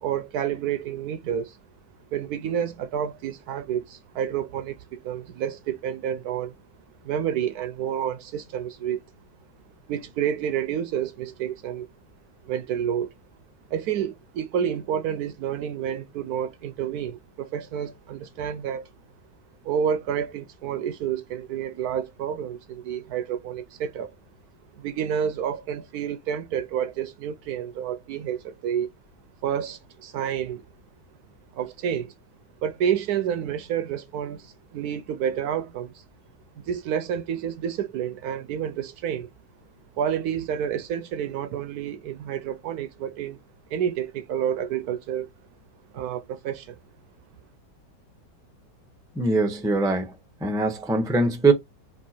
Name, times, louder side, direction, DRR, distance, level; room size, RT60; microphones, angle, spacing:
voice 1, 0.0-1.6 2.1-6.5 7.0-9.0 9.9-11.9 12.4-13.1 13.7-18.9 19.6-24.1 24.8-28.9 29.4-30.6 31.5-32.1 32.6-36.0 36.6-39.3 39.9-43.4 43.7-45.3 45.9-46.8, right 9 dB, 70° right, 1.0 m, -29 dB
voice 2, 49.2-50.1 50.4-51.5, right 3 dB, 5° right, 0.3 m, -22 dB
4.5 x 2.8 x 4.2 m
omnidirectional pair, 1.9 m